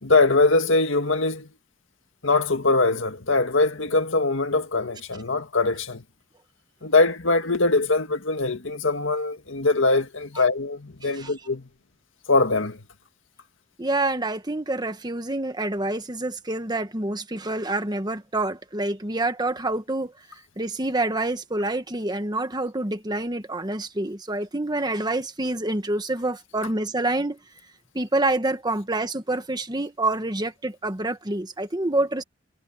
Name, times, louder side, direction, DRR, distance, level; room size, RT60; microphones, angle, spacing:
voice 1, 0.0-1.5 2.2-6.0 6.8-11.7 12.3-12.8, left 3 dB, 80° left, 2.0 m, -22 dB
voice 2, 13.8-20.1 20.6-27.4 27.9-32.2, right 2 dB, 20° right, 1.4 m, -27 dB
head